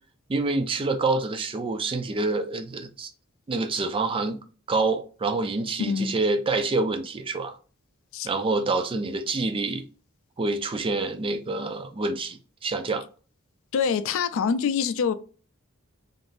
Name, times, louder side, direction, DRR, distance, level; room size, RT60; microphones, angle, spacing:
voice 1, 0.3-3.1 3.5-4.4 4.7-7.6 8.2-9.8 10.4-13.1, right 3 dB, 25° right, 0.4 m, -27 dB
voice 2, 5.8-6.1 8.1-8.3 13.7-15.1, left 6 dB, 65° left, 0.4 m, -25 dB
3.5 x 2.5 x 2.5 m
head